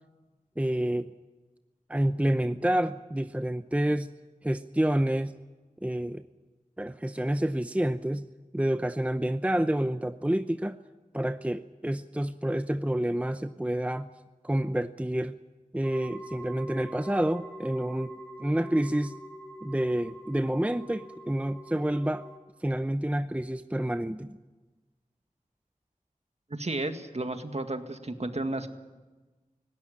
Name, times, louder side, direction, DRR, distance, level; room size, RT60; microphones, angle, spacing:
voice 1, 0.6-1.1 1.9-4.1 4.4-5.4 5.8-6.2 6.8-8.3 8.5-10.8 11.1-14.1 14.4-15.4 15.7-18.1 18.4-19.1 19.6-22.3 22.6-24.4, right 1 dB, 10° right, 11 dB, 0.7 m, -28 dB
sound 1, 15.8-22.4, right 1 dB, 5° left, 2.8 m, -45 dB
voice 2, 26.5-28.7, right 2 dB, 50° right, 7 dB, 1.9 m, -33 dB
19.5 x 16.5 x 9.9 m, 1.2 s
wide cardioid pair, 45°, 14 cm